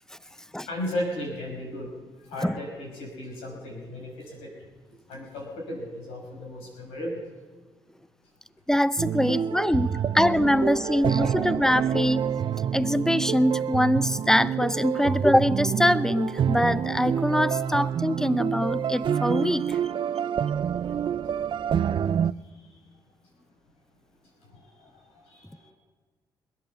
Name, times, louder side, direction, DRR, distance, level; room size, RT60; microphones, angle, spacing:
voice 1, 0.4-1.9 2.2-4.5 5.1-7.2 9.2-9.3 10.5-11.1 22.5-22.6 24.4-25.7, left 1 dB, 85° left, -1 dB, 6.3 m, -36 dB
voice 2, 8.7-12.3 12.7-19.8, left 1 dB, 5° left, 15 dB, 0.8 m, -23 dB
sound 1, 9.0-22.3, right 8 dB, 55° right, 0.5 m, -27 dB
21.5 x 9.5 x 7.2 m, 1.4 s
supercardioid pair, 50°, 10 cm